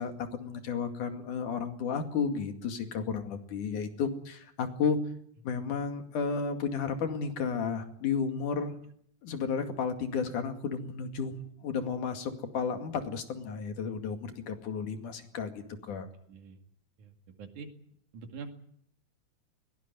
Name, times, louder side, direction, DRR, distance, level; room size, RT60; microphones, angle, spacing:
voice 1, 0.0-5.0 5.4-8.7 9.2-11.3 11.6-16.1, left 6 dB, 85° left, 6 dB, 3.8 m, -33 dB
voice 2, 17.4-17.7 18.1-18.5, right 5 dB, 80° right, 5 dB, 3.8 m, -44 dB
21.5 x 18.0 x 9.7 m, 0.66 s
omnidirectional pair, 3.5 m